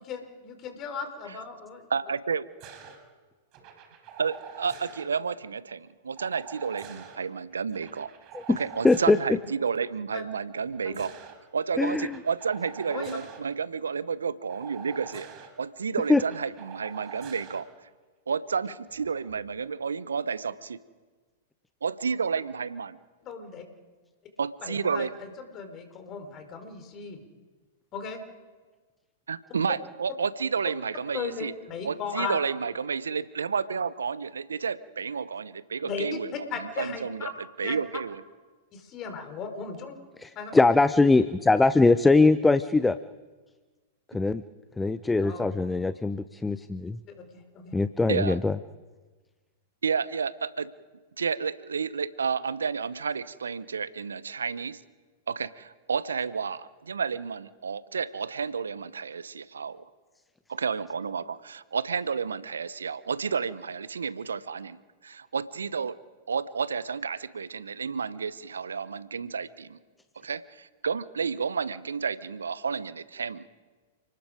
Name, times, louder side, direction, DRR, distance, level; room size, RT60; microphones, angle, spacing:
voice 1, 0.1-1.9 10.1-10.2 10.8-11.0 12.9-13.1 23.2-23.6 24.6-25.1 25.4-27.2 27.9-28.2 31.1-32.4 35.8-36.2 36.5-37.3 37.6-37.8 38.7-39.9 40.3-40.5 45.2-45.4 47.2-47.7, left 6 dB, 35° left, 6 dB, 4.4 m, -36 dB
voice 2, 1.9-2.5 4.2-8.1 8.6-11.1 11.5-15.3 15.6-17.7 18.3-20.8 21.8-23.0 24.4-25.1 29.3-31.5 31.8-37.3 37.6-38.2 48.1-48.4 49.8-50.7 51.2-54.8 55.3-59.9 60.5-66.0 66.3-69.8 70.2-73.5, right 6 dB, 75° right, 17 dB, 0.8 m, -31 dB
sound 1, 2.6-3.0 3.5-5.1 6.2-7.2 7.7-9.3 10.6-11.3 11.9-13.4 14.5-15.5 16.0-17.6 18.9-19.3, right 8 dB, 40° right, 4.3 m, -46 dB
voice 3, 8.8-9.2 11.8-12.2 16.1-16.2 40.2-43.0 44.1-44.4 44.8-47.0 47.7-48.6, left 3 dB, 10° left, 14 dB, 0.6 m, -22 dB
30.0 x 19.5 x 5.1 m, 1.3 s
figure-of-eight pair, 100°, 0 cm